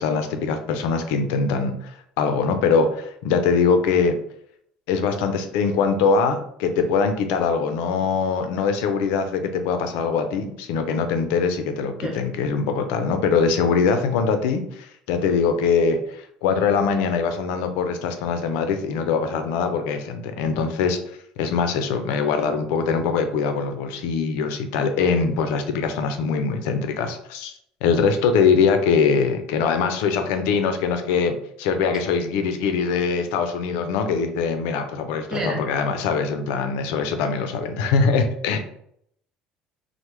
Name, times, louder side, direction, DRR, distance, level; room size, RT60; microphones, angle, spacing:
voice 1, 0.0-4.2 4.9-21.0 21.4-27.5 27.8-38.6, left 5 dB, 85° left, 7 dB, 0.4 m, -22 dB
voice 2, 35.3-35.6, right 2 dB, 20° right, 0 dB, 0.7 m, -29 dB
3.2 x 2.1 x 3.0 m, 0.69 s
cardioid pair, 150°, 3 cm